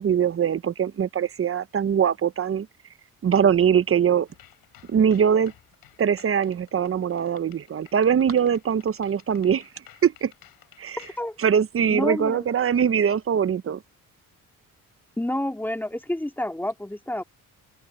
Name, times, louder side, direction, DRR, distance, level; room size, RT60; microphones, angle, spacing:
voice 1, 0.0-2.7 3.2-4.3 4.9-5.5 6.0-9.7 10.0-10.3 10.8-11.1 11.4-13.8, right 8 dB, 40° right, 0.8 m, -22 dB
sound 1, 4.3-11.2, left 13 dB, 85° left, 7.2 m, -54 dB
voice 2, 11.0-11.3 11.9-12.5 15.2-17.2, left 1 dB, 5° left, 2.5 m, -29 dB
open air
cardioid pair, 90°, 35 cm